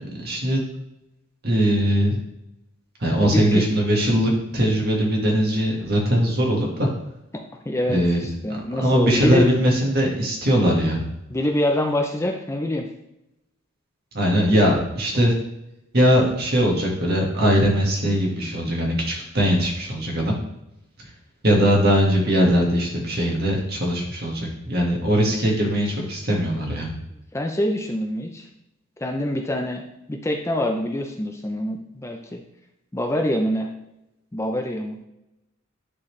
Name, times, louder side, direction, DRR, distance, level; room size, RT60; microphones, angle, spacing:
voice 1, 0.2-0.6 1.4-2.2 3.0-6.9 7.9-8.2 8.8-11.0 14.1-15.4 15.9-20.4 21.4-26.9, equal, 50° right, -1 dB, 1.7 m, -20 dB
voice 2, 3.2-3.6 7.3-9.5 11.3-12.9 27.1-28.5 29.0-29.8 30.1-32.4 32.9-33.7 34.3-35.0, left 1 dB, 15° left, 2 dB, 0.5 m, -25 dB
9.8 x 4.1 x 3.2 m, 0.88 s
head